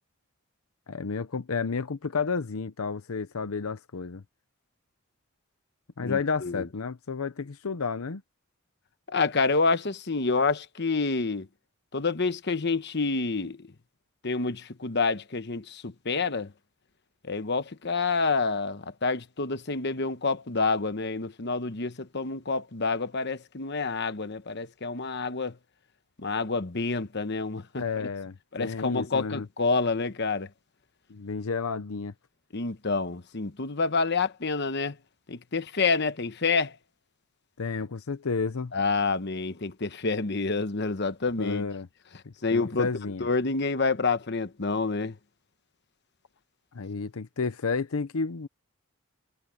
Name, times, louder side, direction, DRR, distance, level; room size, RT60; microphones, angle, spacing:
voice 1, 0.9-4.2 6.0-8.2 27.8-29.5 31.1-32.1 37.6-38.7 41.4-41.9 42.2-43.3 46.7-48.5, left 4 dB, 85° left, 0.7 m, -31 dB
voice 2, 6.0-6.7 9.1-11.5 11.9-13.7 14.2-16.5 17.2-25.6 26.2-28.1 28.5-30.5 32.5-35.0 35.3-36.8 38.7-41.6 42.4-42.9 43.2-45.2, left 4 dB, 55° left, 1.1 m, -28 dB
head